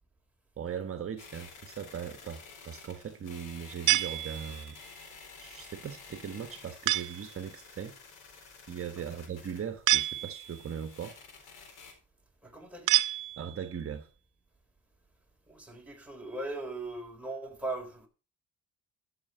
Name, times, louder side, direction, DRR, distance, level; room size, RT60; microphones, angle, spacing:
voice 1, 0.6-4.8 5.0-7.9 8.3-11.2 13.4-14.1, right 8 dB, 45° right, 1.4 m, -39 dB
sound 1, 1.2-11.9, left 4 dB, 85° left, 4.1 m, -51 dB
sound 2, 3.9-4.8 6.9-7.4 9.9-10.7 12.9-13.8, right 17 dB, 85° right, 0.6 m, -28 dB
voice 2, 12.4-13.0 15.5-18.1, right 2 dB, 5° right, 3.8 m, -39 dB
14.0 x 6.1 x 5.5 m
cardioid pair, 90°, 30 cm